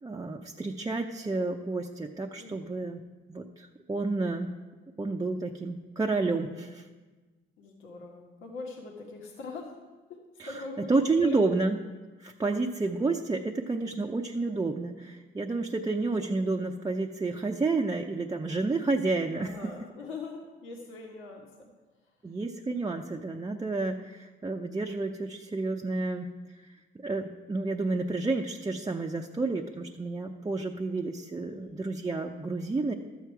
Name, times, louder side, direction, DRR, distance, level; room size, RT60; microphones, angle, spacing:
voice 1, 0.0-3.0 3.3-4.6 5.0-6.9 10.4-10.5 10.9-11.8 12.2-19.5 22.2-26.3 26.6-26.7 27.0-32.9, right 3 dB, 20° right, 0 dB, 0.6 m, -30 dB
voice 2, 2.4-2.8 7.6-9.7 10.1-11.4 19.3-21.7 22.0-22.4 31.4-31.8, left 3 dB, 90° left, -1 dB, 1.6 m, -42 dB
13.0 x 7.6 x 4.6 m, 1.3 s
cardioid pair, 90°, 20 cm